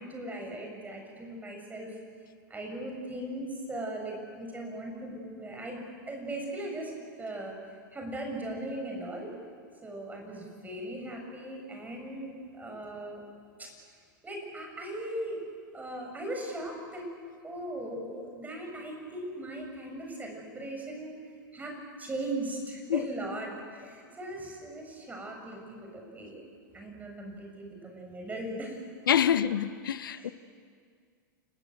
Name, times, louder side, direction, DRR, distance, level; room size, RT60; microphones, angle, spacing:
voice 1, 0.0-2.0 2.5-5.8 6.1-6.9 7.2-9.3 9.8-13.2 13.6-13.7 14.2-15.4 15.7-17.1 17.4-21.1 21.5-26.4 26.7-28.8 30.1-30.3, right 1 dB, 15° right, 7.8 m, -38 dB
voice 2, 29.1-30.3, left 9 dB, 80° left, 1.1 m, -26 dB
29.5 x 20.0 x 8.1 m
hypercardioid pair, 105°, 11 cm